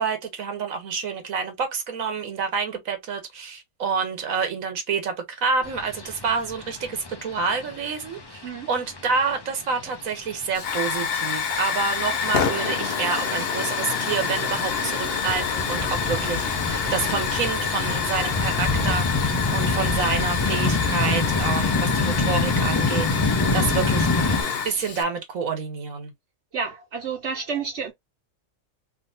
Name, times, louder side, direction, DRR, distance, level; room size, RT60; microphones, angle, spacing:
voice 1, 0.0-24.1 24.6-26.1, right 5 dB, 85° right, 1.4 m, -28 dB
sound 1, 5.6-24.4, left 3 dB, 30° left, 0.5 m, -28 dB
Hiss / Fire, 10.5-25.0, left 6 dB, 55° left, 0.9 m, -27 dB
voice 2, 26.5-27.9, right 5 dB, 60° right, 1.1 m, -30 dB
3.5 x 2.8 x 2.5 m
omnidirectional pair, 1.4 m